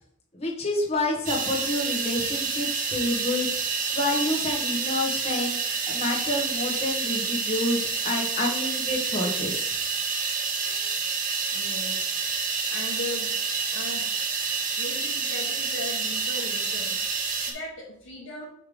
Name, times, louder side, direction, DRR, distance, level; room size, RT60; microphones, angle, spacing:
voice 1, 0.3-3.5 3.9-5.6 5.9-9.7, left 1 dB, 30° left, -2 dB, 1.4 m, -28 dB
sound 1, 1.3-17.5, right 5 dB, 40° right, 0.8 m, -28 dB
voice 2, 10.6-11.0 11.5-14.2 14.7-18.4, left 2 dB, 75° left, -5 dB, 1.4 m, -39 dB
5.6 x 3.4 x 5.0 m, 0.71 s
head